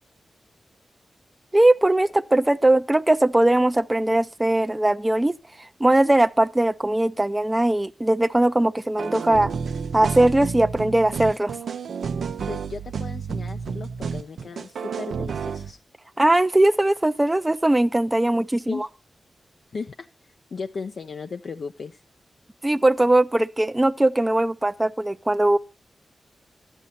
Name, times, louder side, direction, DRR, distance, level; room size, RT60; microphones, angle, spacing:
voice 1, 1.5-5.3 5.8-9.5 9.9-11.6 16.2-18.9 22.6-25.6, right 1 dB, 20° right, 0.5 m, -20 dB
sound 1, 9.0-15.7, right 6 dB, 85° right, 0.6 m, -30 dB
voice 2, 12.5-15.8 18.7-18.9 19.7-20.1 20.5-22.0, left 4 dB, 70° left, 0.5 m, -35 dB
12.5 x 10.0 x 4.1 m
cardioid pair, 50°, 0 cm